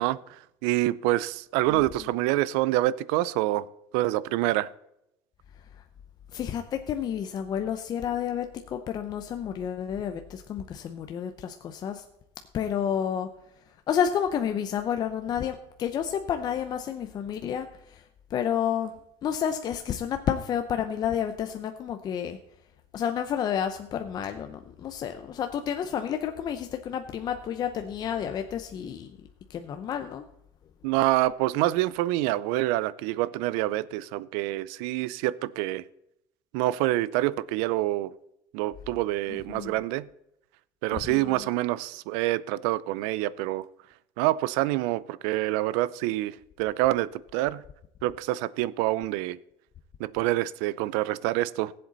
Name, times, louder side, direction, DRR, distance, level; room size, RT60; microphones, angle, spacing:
voice 1, 0.0-3.7 3.9-4.7 30.8-35.8 36.5-38.1 38.5-40.1 40.8-43.7 44.2-47.6 48.0-49.4 50.0-51.7, right 16 dB, 85° right, 0.5 m, -26 dB
voice 2, 1.7-2.1 6.3-12.0 12.5-13.3 13.9-18.0 18.3-19.0 19.2-22.4 22.9-29.2 29.5-30.2 39.3-39.7 40.9-41.4, left 8 dB, 35° left, 0.7 m, -30 dB
17.0 x 7.7 x 4.0 m
cardioid pair, 140°, 11 cm